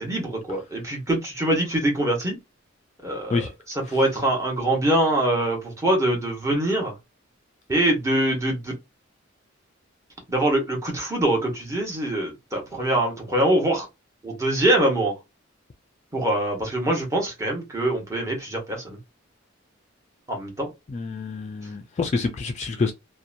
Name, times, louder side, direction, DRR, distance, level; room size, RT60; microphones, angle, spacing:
voice 1, 0.0-2.4 3.0-6.9 7.7-8.7 10.3-13.9 14.2-15.2 16.1-19.0 20.3-20.7, right 1 dB, 15° right, 1.1 m, -24 dB
voice 2, 20.9-22.9, left 4 dB, 35° left, 0.4 m, -27 dB
2.8 x 2.1 x 2.4 m
head